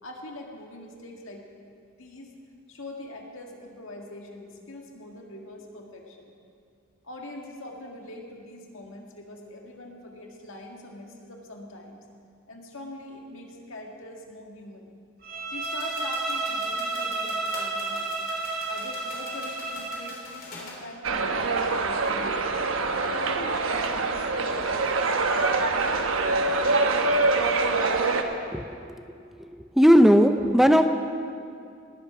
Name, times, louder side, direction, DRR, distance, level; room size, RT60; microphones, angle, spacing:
voice 1, 0.0-1.5 2.0-2.3 2.7-6.3 7.0-12.0 12.5-14.9 15.5-18.2 18.7-22.5 23.1-25.5, left 1 dB, 80° left, 1 dB, 1.8 m, -43 dB
Bowed string instrument, 15.2-20.1, right 3 dB, 45° right, 2.6 m, -31 dB
sound 1, 15.6-20.8, left 3 dB, 45° left, 2.7 m, -45 dB
sound 2, 21.0-28.2, right 3 dB, 85° right, 1.0 m, -24 dB
voice 2, 29.8-30.9, equal, ahead, 7 dB, 0.4 m, -17 dB
18.5 x 8.0 x 5.9 m, 2.4 s
head